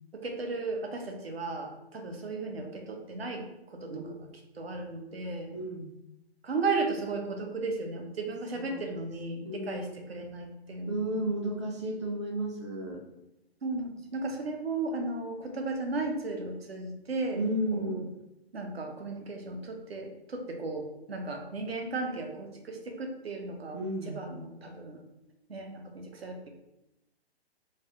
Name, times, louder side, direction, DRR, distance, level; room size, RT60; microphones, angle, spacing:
voice 1, 0.1-4.3 4.5-5.5 6.4-11.2 13.6-17.4 17.7-18.1 18.5-25.0 25.5-26.5, right 3 dB, 70° right, 4 dB, 0.7 m, -35 dB
voice 2, 5.5-5.9 8.5-8.9 9.4-10.0 10.9-13.0 17.3-18.1 23.7-24.2, right 1 dB, 30° right, 1 dB, 0.3 m, -33 dB
3.2 x 2.1 x 2.8 m, 0.90 s
figure-of-eight pair, 130°, 32 cm